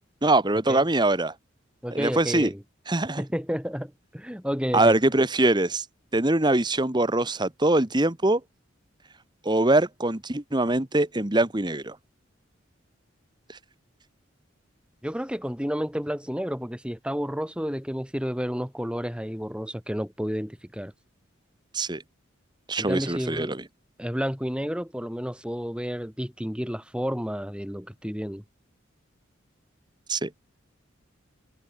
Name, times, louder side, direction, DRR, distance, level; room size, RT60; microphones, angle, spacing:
voice 1, 0.2-1.3 1.9-2.5 2.9-3.2 4.7-5.8 6.1-8.4 9.4-11.9 13.5-13.6 21.7-22.0 22.7-23.6 30.1-30.3, right 2 dB, 20° right, 1.4 m, -23 dB
voice 2, 1.8-2.6 3.2-5.0 15.0-20.9 22.8-23.5 24.0-28.4, equal, 5° right, 7.7 m, -31 dB
head